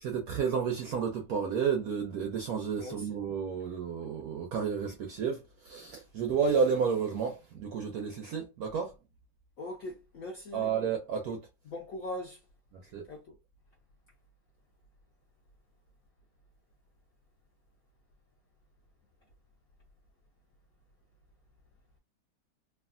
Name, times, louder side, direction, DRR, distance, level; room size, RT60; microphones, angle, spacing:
voice 1, 0.0-8.9 10.5-11.5 12.7-13.1, right 6 dB, 75° right, 0.8 m, -31 dB
voice 2, 2.8-3.1 9.6-10.7 11.7-12.4 13.1-13.3, left 1 dB, 70° left, 0.8 m, -40 dB
3.2 x 2.4 x 2.4 m
omnidirectional pair, 2.1 m